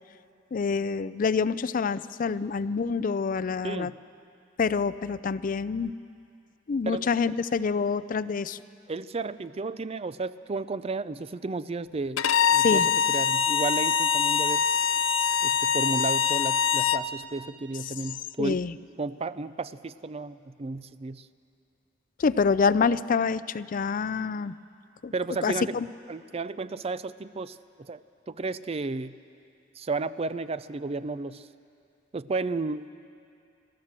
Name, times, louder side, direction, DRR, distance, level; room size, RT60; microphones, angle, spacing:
voice 1, 0.5-3.9 4.6-5.9 6.7-8.6 12.6-12.9 18.4-18.7 22.2-24.5 25.0-25.1 25.4-25.9, left 5 dB, 45° left, 16 dB, 0.4 m, -26 dB
voice 2, 3.6-4.0 6.9-7.1 8.9-12.2 12.5-14.6 15.4-18.6 19.0-21.3 25.1-25.7 26.1-28.0 28.3-29.2 29.8-31.5 32.1-32.9, right 3 dB, 30° right, 15 dB, 0.4 m, -33 dB
Bowed string instrument, 12.2-17.1, left 7 dB, 90° left, 0.6 m, -24 dB
30.0 x 13.5 x 7.4 m, 2.5 s
head